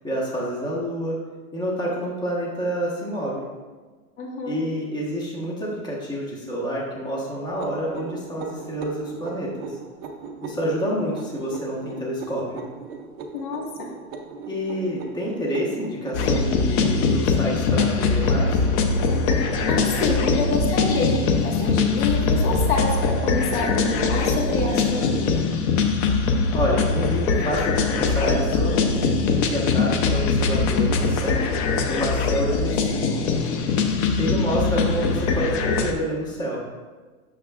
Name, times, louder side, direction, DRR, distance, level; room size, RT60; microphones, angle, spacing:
voice 1, 0.0-1.2 1.5-3.5 4.5-9.5 10.4-12.6 14.5-18.6 26.5-31.4 31.8-33.2 34.2-36.6, equal, 10° left, -4 dB, 1.2 m, -28 dB
voice 2, 4.2-4.6 13.3-13.9 19.7-25.4, left 2 dB, 70° left, 0 dB, 1.7 m, -27 dB
sound 1, 7.5-24.9, right 4 dB, 25° right, 0.4 m, -39 dB
sound 2, 16.1-35.9, left 4 dB, 30° left, 0.5 m, -22 dB
8.6 x 6.7 x 2.4 m, 1.4 s
hypercardioid pair, 140°, 43 cm